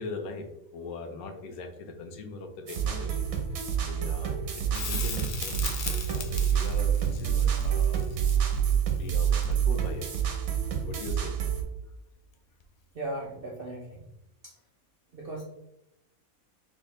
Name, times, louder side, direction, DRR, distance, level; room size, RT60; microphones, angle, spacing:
voice 1, 0.0-3.3 3.8-8.2 8.9-10.1 10.8-11.3, left 3 dB, 85° left, 5 dB, 1.2 m, -40 dB
sound 1, 2.7-11.6, right 8 dB, 75° right, 1.2 m, -27 dB
Crackle, 4.7-9.9 12.6-12.7, left 6 dB, 60° left, 0.5 m, -38 dB
voice 2, 12.9-14.0 14.4-14.5 15.1-15.4, right 1 dB, 50° right, -2 dB, 0.7 m, -37 dB
4.1 x 3.6 x 3.1 m, 0.83 s
omnidirectional pair, 1.5 m